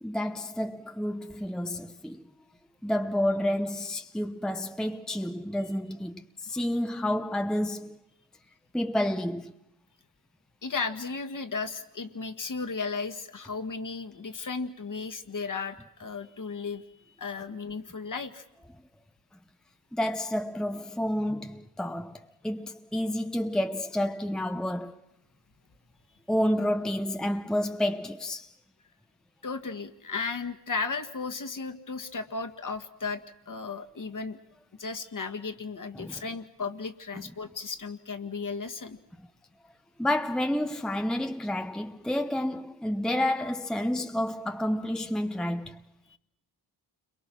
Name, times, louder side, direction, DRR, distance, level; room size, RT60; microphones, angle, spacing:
voice 1, 0.0-2.2 2.8-8.0 8.7-9.5 19.9-25.0 26.3-28.5 36.0-36.2 40.0-45.8, left 1 dB, ahead, 0.9 m, -30 dB
voice 2, 10.6-16.8 17.2-18.4 29.4-34.4 34.8-39.0 46.1-46.2, left 4 dB, 40° left, 1.8 m, -35 dB
29.0 x 22.5 x 6.2 m
supercardioid pair, 55°, 47 cm